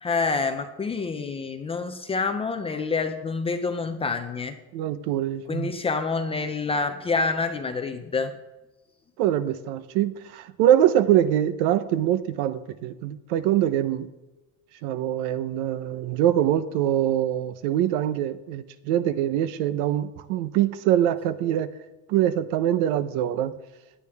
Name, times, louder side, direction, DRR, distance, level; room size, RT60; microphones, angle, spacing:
voice 1, 0.0-4.6 5.5-8.4, left 4 dB, 15° left, 7 dB, 0.5 m, -27 dB
voice 2, 4.7-5.7 9.2-14.1 14.8-21.7 22.1-23.5, right 11 dB, 75° right, 13 dB, 1.0 m, -24 dB
17.0 x 11.5 x 3.5 m, 1.1 s
cardioid pair, 170°, 42 cm